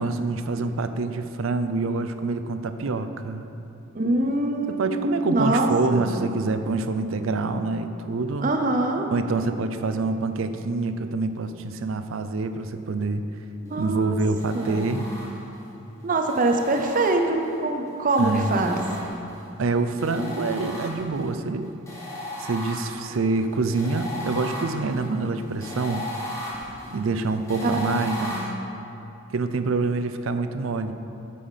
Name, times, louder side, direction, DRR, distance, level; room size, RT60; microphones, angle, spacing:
voice 1, 0.0-3.5 4.7-8.5 9.1-13.2 13.8-15.1 18.2-18.5 19.6-21.7 22.4-26.0 26.9-28.3 29.3-30.9, right 3 dB, 80° right, 9 dB, 0.5 m, -26 dB
voice 2, 3.9-6.1 8.4-9.1 13.6-14.2 14.5-14.9 16.0-18.8 27.6-27.8 28.2-28.5, right 2 dB, 40° right, 4 dB, 0.7 m, -24 dB
sound 1, 14.4-15.6 16.2-17.6 18.1-19.4 20.0-21.3 21.9-28.4, left 1 dB, 15° left, 1.5 m, -36 dB
8.3 x 5.6 x 5.6 m, 2.9 s
head